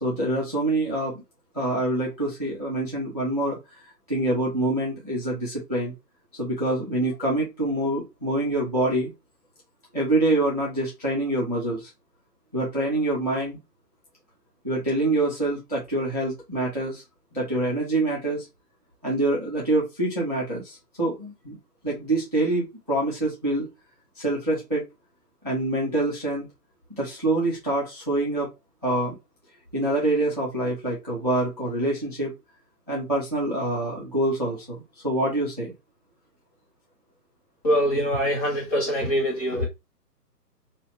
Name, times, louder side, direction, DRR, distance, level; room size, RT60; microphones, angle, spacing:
voice 1, 0.0-1.1 1.5-3.6 4.1-5.9 6.4-9.1 9.9-11.9 12.5-13.6 14.6-17.0 17.3-18.5 19.0-21.6 21.8-23.7 24.2-24.8 25.4-26.5 26.9-28.5 28.8-29.2 29.7-32.3 32.9-35.7, right 1 dB, 25° right, 0.5 m, -26 dB
voice 2, 37.6-39.7, equal, 25° left, 1.1 m, -23 dB
3.0 x 2.4 x 2.9 m
hypercardioid pair, 160°, 49 cm